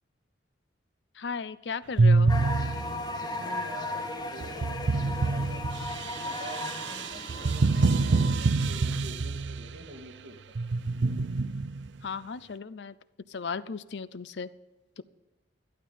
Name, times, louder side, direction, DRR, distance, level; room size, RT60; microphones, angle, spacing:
voice 1, 1.2-2.3 12.0-12.9 13.3-14.5 15.0-15.1, left 5 dB, 70° left, 16 dB, 0.5 m, -36 dB
sound 1, 2.0-3.2 4.4-9.8 10.5-11.9, right 3 dB, 80° right, 0.6 m, -26 dB
sound 2, 2.3-8.3, left 2 dB, 25° left, 1.4 m, -36 dB
voice 2, 3.2-5.6 6.1-10.6, right 1 dB, 65° right, 1 dB, 2.3 m, -47 dB
12.5 x 12.0 x 5.5 m, 1.1 s
head